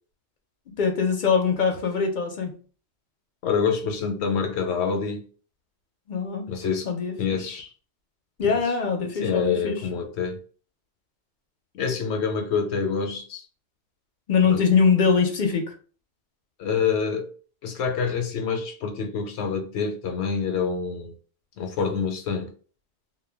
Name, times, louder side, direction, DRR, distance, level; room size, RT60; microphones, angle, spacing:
voice 1, 0.8-2.5 6.1-6.4 6.9-7.4 8.4-9.8 14.3-15.7, left 5 dB, 55° left, 4 dB, 0.6 m, -22 dB
voice 2, 3.4-5.2 6.5-6.9 7.2-7.7 8.4-8.6 9.2-10.4 11.7-13.4 14.5-14.7 16.6-17.3 17.6-21.1 21.6-22.5, left 6 dB, 80° left, 5 dB, 0.9 m, -26 dB
2.2 x 2.1 x 3.3 m, 0.41 s
omnidirectional pair, 1.1 m